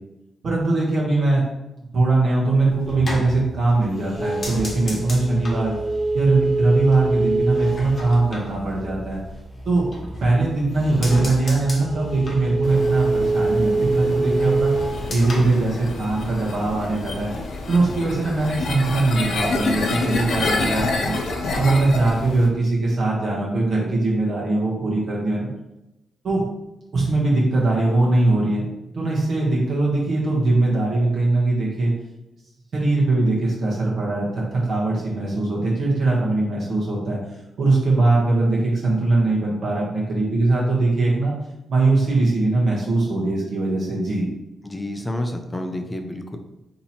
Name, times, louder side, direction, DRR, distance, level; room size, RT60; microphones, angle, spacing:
voice 1, 0.4-1.4 1.9-5.7 6.1-9.2 9.6-9.9 10.2-14.7 15.1-17.3 17.7-21.2 21.5-25.5 26.2-26.4 26.9-28.6 28.9-31.9 32.7-37.2 37.6-41.3 41.7-44.3, right 2 dB, 60° right, -5 dB, 0.9 m, -21 dB
sound 1, 2.5-9.3 9.7-10.4 10.7-16.4 16.7-17.2, right 2 dB, 40° left, 0.9 m, -26 dB
sound 2, 4.4-13.8, equal, 15° right, 1.0 m, -39 dB
sound 3, 12.6-22.5, left 3 dB, 65° left, 0.6 m, -28 dB
voice 2, 44.6-46.4, left 1 dB, 10° left, 4 dB, 0.4 m, -29 dB
2.9 x 2.8 x 4.1 m, 0.94 s
cardioid pair, 120°, 0 cm